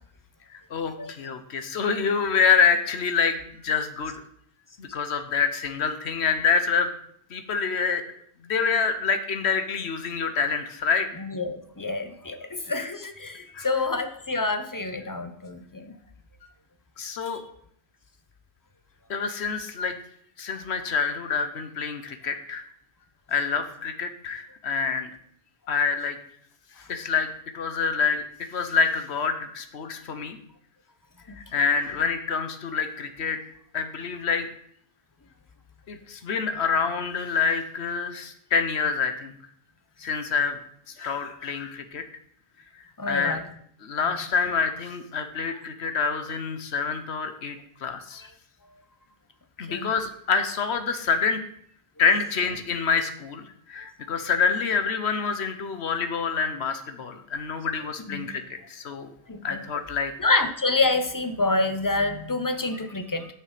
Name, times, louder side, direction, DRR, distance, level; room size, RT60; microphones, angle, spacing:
voice 1, 0.5-4.2 4.8-6.9 7.3-8.0 8.4-11.1 13.5-13.7 17.0-17.4 19.1-20.0 20.4-22.6 23.3-25.1 25.7-26.2 26.9-27.3 27.5-28.2 28.5-30.4 31.5-33.4 33.7-34.5 35.9-39.3 40.0-40.6 41.0-42.0 43.0-43.4 43.8-48.2 49.6-51.4 52.0-59.1 59.4-60.1, left 5 dB, 80° left, 9 dB, 1.3 m, -26 dB
voice 2, 11.2-16.0 31.3-31.4 43.0-43.5 44.1-44.2 48.2-48.3 49.7-49.9 58.1-58.3 59.3-59.6 60.2-63.3, left 3 dB, 20° left, 8 dB, 0.7 m, -27 dB
9.6 x 6.6 x 5.0 m, 0.66 s
omnidirectional pair, 1.1 m